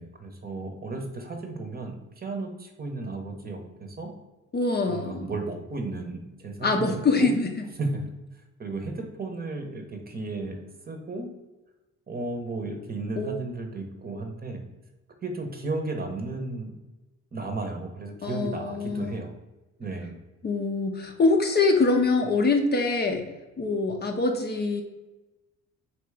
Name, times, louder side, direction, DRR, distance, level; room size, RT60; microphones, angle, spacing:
voice 1, 0.0-4.1 4.9-7.3 7.8-8.0 8.6-10.6 10.9-11.3 12.1-14.6 15.2-16.7 17.3-19.3 19.8-20.2, right 3 dB, 30° right, 4 dB, 0.8 m, -34 dB
voice 2, 4.5-5.3 6.6-7.5 13.2-13.4 18.2-19.1 20.4-23.3 23.6-24.8, left 3 dB, 35° left, 4 dB, 0.6 m, -24 dB
3.3 x 2.9 x 4.7 m, 1.1 s
cardioid pair, 90°, 30 cm